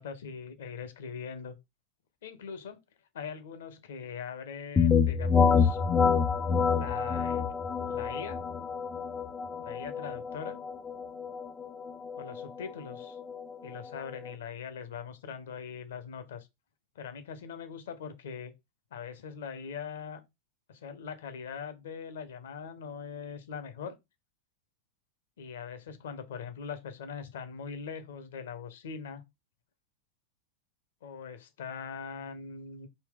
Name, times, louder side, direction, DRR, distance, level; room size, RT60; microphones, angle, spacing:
voice 1, 0.0-1.6 2.2-2.8 3.1-5.8 6.7-7.4 7.9-8.4 9.6-10.6 12.2-13.2 13.6-16.5 16.9-18.5 18.9-20.2 20.7-24.0 25.4-29.2 31.0-32.9, left 6 dB, 60° left, 0.6 m, -41 dB
sound 1, 4.8-14.3, left 6 dB, 20° left, 0.3 m, -28 dB
3.9 x 2.2 x 3.5 m
figure-of-eight pair, 90°, 0 cm